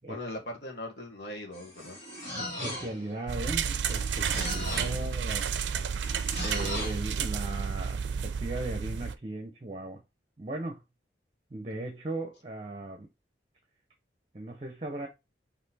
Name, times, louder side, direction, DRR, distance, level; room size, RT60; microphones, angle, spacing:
voice 1, 0.1-2.0 4.2-5.0, left 1 dB, 70° left, 1.2 m, -40 dB
sound 1, 1.5-3.1 3.8-5.0 6.0-7.1, left 1 dB, 40° left, 2.2 m, -37 dB
voice 2, 2.3-5.5 6.4-10.0 10.4-10.8 11.5-13.1 14.3-15.1, right 2 dB, 30° right, 0.8 m, -37 dB
sound 2, 3.3-9.2, right 7 dB, 75° right, 0.4 m, -31 dB
4.2 x 2.9 x 4.1 m
head